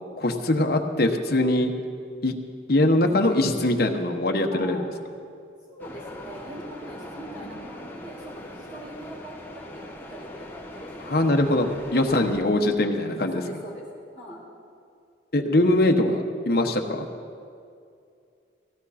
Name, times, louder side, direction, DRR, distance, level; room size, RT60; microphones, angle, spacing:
voice 1, 0.2-1.7 2.2-2.3 2.7-4.8 11.1-13.4 15.3-17.1, left 1 dB, 50° left, 3 dB, 1.1 m, -22 dB
voice 2, 4.5-4.8 5.7-9.8 10.1-11.7 12.1-12.4 13.2-13.8 14.1-14.4, equal, 25° right, -7 dB, 4.4 m, -42 dB
sound 1, 5.8-12.4, equal, 10° left, 1.1 m, -41 dB
18.5 x 16.0 x 4.2 m, 2.4 s
head